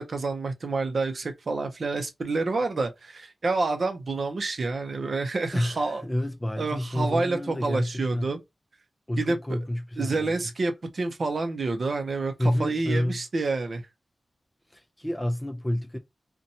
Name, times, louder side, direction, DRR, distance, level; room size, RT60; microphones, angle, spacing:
voice 1, 0.0-6.0 6.6-8.4 9.2-9.6 10.0-12.3 12.6-13.8, right 3 dB, 55° right, 0.5 m, -28 dB
voice 2, 5.5-8.3 9.1-10.3 12.4-13.2 14.7-16.0, left 1 dB, 15° left, 0.4 m, -29 dB
2.8 x 2.2 x 2.6 m
wide cardioid pair, 115°, 0 cm